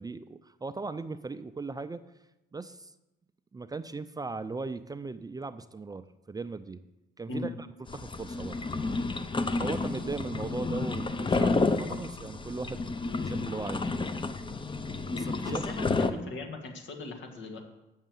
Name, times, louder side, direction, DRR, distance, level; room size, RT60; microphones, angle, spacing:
voice 1, 0.0-2.0 2.5-2.9 3.5-6.8 7.2-7.7 7.9-8.6 9.6-12.8 13.2-13.9 15.1-15.6, right 3 dB, 20° right, 12 dB, 0.4 m, -38 dB
sound 1, 7.9-16.1, left 3 dB, 25° left, 0.7 m, -30 dB
voice 2, 15.5-17.6, left 2 dB, 70° left, 5 dB, 1.7 m, -38 dB
7.3 x 6.5 x 7.7 m, 0.96 s
cardioid pair, 90°, 20 cm